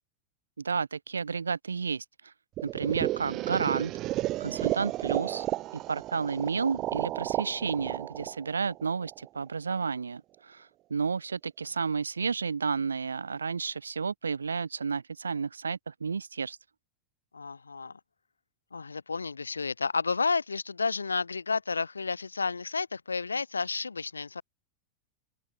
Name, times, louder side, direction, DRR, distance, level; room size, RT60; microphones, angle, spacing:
voice 1, 0.6-2.3 2.6-3.9 4.4-5.5 5.9-16.6, right 5 dB, 75° right, 0.9 m, -31 dB
sound 1, 2.6-9.4, right 16 dB, 35° right, 2.8 m, -33 dB
voice 2, 17.3-17.9 18.7-24.4, left 4 dB, 75° left, 1.3 m, -31 dB
figure-of-eight pair, 90°, 0 cm